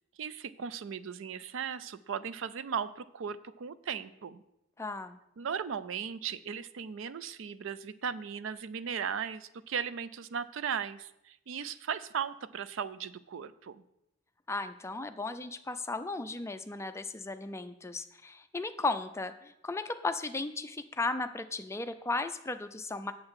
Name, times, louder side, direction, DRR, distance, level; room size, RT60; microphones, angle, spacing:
voice 1, 0.2-4.4 5.4-13.8, right 7 dB, 70° right, 15 dB, 0.4 m, -37 dB
voice 2, 4.8-5.2 14.5-23.1, left 3 dB, 15° left, 9 dB, 0.4 m, -35 dB
8.5 x 7.2 x 4.8 m, 0.81 s
head